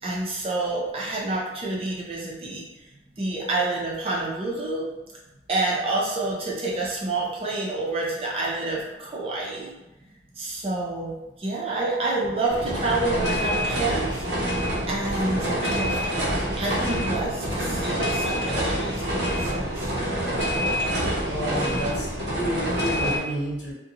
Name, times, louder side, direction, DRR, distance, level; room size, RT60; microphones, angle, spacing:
voice 1, 0.0-2.7 3.2-4.9 5.5-9.7 10.4-11.1 11.4-14.2 14.9-16.0 16.6-19.9 20.9-21.1, right 2 dB, 30° right, -4 dB, 0.6 m, -28 dB
sound 1, 12.5-23.2, equal, 70° right, 0.7 m, -26 dB
voice 2, 21.2-21.9 22.2-23.7, equal, 70° left, -6 dB, 1.0 m, -30 dB
2.4 x 2.2 x 2.8 m, 1.0 s
head